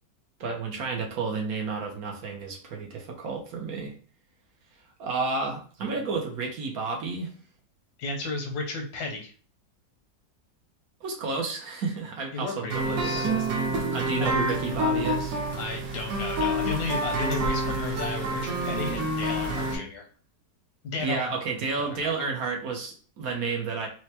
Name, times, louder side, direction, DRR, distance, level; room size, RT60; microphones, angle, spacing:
voice 1, 0.4-3.9 5.0-7.3 11.0-13.5 13.9-15.4 21.0-23.9, right 4 dB, 65° right, 1 dB, 1.1 m, -31 dB
voice 2, 8.0-9.3 12.3-13.3 14.2-14.3 15.6-20.1 20.9-21.2 21.8-22.1, left 3 dB, 85° left, 2 dB, 1.5 m, -33 dB
sound 1, 12.7-19.8, right 1 dB, 85° right, 1.6 m, -28 dB
4.3 x 2.1 x 2.8 m, 0.41 s
omnidirectional pair, 1.9 m